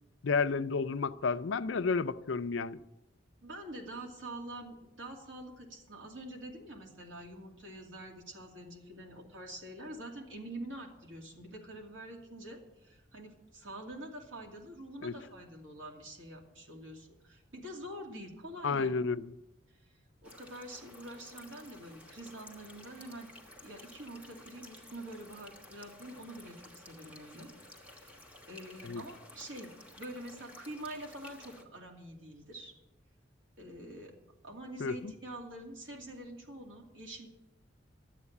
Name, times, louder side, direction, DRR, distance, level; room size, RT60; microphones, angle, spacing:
voice 1, 0.2-2.8 15.0-15.2 18.6-19.3 28.8-29.0 34.8-35.1, left 4 dB, 75° left, 0.5 m, -31 dB
voice 2, 3.4-18.9 20.2-23.3 23.6-27.5 27.8-28.2 28.5-29.7 30.0-32.7 33.6-34.1 34.4-37.3, right 1 dB, 90° right, 2.5 m, -46 dB
sound 1, 20.2-31.6, left 1 dB, 10° right, 1.4 m, -54 dB
12.0 x 8.3 x 8.4 m
head